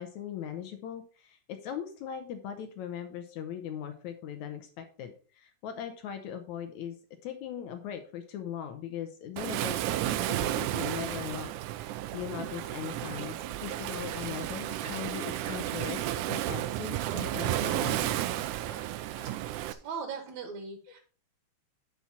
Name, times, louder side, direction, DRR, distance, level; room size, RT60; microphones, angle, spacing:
voice 1, 0.0-7.0 7.2-11.5 11.8-18.2, left 9 dB, 75° left, 7 dB, 2.1 m, -39 dB
Waves surf, 9.4-19.7, right 14 dB, 80° right, 2.1 m, -32 dB
Cough, 14.1-14.4 14.8-15.1 15.4-15.8 17.6-18.0 18.6-19.4, right 4 dB, 40° right, 1.7 m, -45 dB
voice 2, 18.2-18.6 19.2-19.4 19.6-21.0, right 5 dB, 65° right, 4 dB, 2.6 m, -40 dB
10.5 x 5.9 x 4.2 m, 0.40 s
omnidirectional pair, 3.6 m